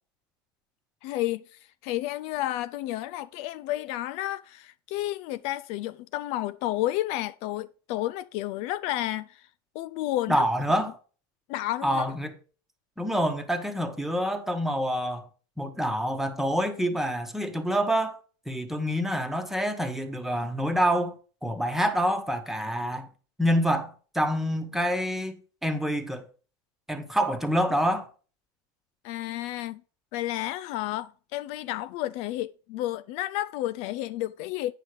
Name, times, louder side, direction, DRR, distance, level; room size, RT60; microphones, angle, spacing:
voice 1, 1.0-9.5 9.7-10.5 11.5-12.0 29.0-29.8 30.1-34.7, left 15 dB, 55° left, 0.4 m, -31 dB
voice 2, 10.3-11.0 11.8-12.3 13.0-15.2 15.6-18.2 18.5-21.1 21.4-23.1 23.4-25.4 25.6-26.3 26.9-28.1, equal, 5° right, 1.2 m, -27 dB
9.1 x 5.6 x 4.8 m
supercardioid pair, 125°, 12 cm